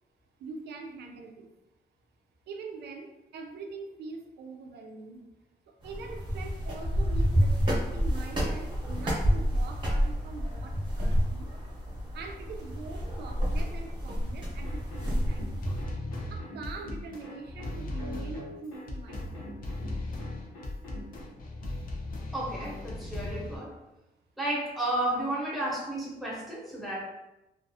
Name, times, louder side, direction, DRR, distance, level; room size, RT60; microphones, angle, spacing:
voice 1, 0.4-1.5 2.5-5.2 5.7-11.5 12.1-15.6 16.3-19.5, right 4 dB, 85° right, 3 dB, 0.4 m, -43 dB
sound 1, 5.8-15.8, equal, 30° right, 0.7 m, -29 dB
sound 2, 14.6-21.2, equal, 80° left, 1.0 m, -46 dB
sound 3, 15.6-23.6, left 2 dB, 55° left, 0.5 m, -37 dB
voice 2, 22.3-23.7 24.4-27.0, right 1 dB, ahead, -6 dB, 0.7 m, -32 dB
2.4 x 2.3 x 2.6 m, 0.95 s
wide cardioid pair, 155°, 17 cm